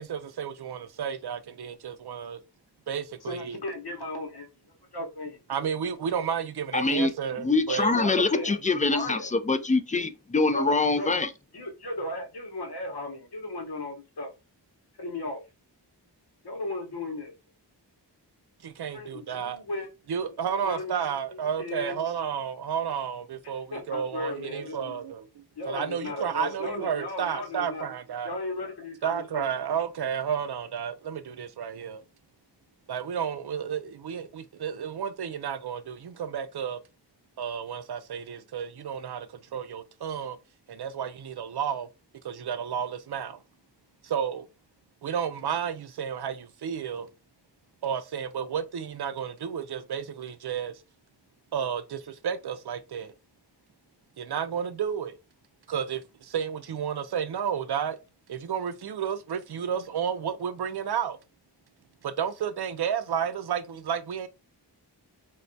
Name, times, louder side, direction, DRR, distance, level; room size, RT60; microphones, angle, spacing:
voice 1, 0.0-2.4 2.9-3.6 5.5-7.9 8.3-8.5 18.6-19.6 20.1-28.3 29.0-32.0 32.9-36.8 37.4-40.4 40.7-41.9 42.2-43.4 44.0-44.5 45.0-47.1 47.8-50.8 51.5-53.1 54.2-55.1 55.7-58.0 58.3-61.2 62.0-64.3, right 8 dB, 65° right, 0.5 m, -32 dB
voice 2, 3.3-5.4 7.9-8.6 8.9-9.3 9.9-10.0 10.5-11.2 11.5-14.3 15.0-15.4 16.4-17.3 18.9-19.9 20.2-21.0 21.3-22.0 23.4-25.0 25.6-27.9 28.2-29.5, left 2 dB, 65° left, 1.0 m, -36 dB
voice 3, 6.7-7.1 7.4-11.3, left 3 dB, 20° left, 0.3 m, -24 dB
3.2 x 2.3 x 2.6 m
wide cardioid pair, 45°, 43 cm